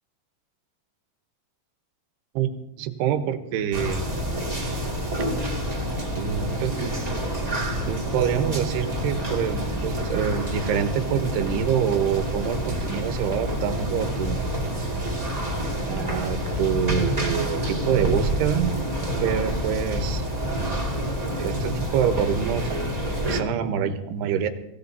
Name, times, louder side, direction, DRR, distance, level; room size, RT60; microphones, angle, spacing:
voice 1, 2.8-4.0 6.1-7.0 7.9-14.4 15.8-18.7 19.2-20.2 21.4-22.7 23.3-24.5, right 9 dB, 85° right, 8 dB, 3.0 m, -26 dB
sound 1, 3.7-23.4, equal, 20° right, 1.0 m, -28 dB
24.0 x 16.0 x 2.7 m, 0.86 s
omnidirectional pair, 4.6 m